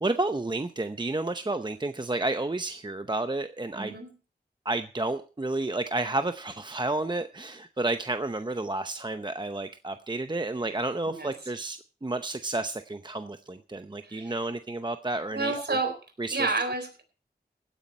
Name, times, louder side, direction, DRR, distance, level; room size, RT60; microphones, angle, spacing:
voice 1, 0.0-4.0 4.7-15.6 16.2-16.4, right 2 dB, 25° right, 9 dB, 0.8 m, -31 dB
voice 2, 3.7-4.1 11.1-11.5 14.0-14.3 15.3-16.0 16.3-17.0, right 3 dB, 80° right, 5 dB, 3.9 m, -30 dB
16.5 x 9.6 x 4.4 m, 0.37 s
wide cardioid pair, 50°, 17 cm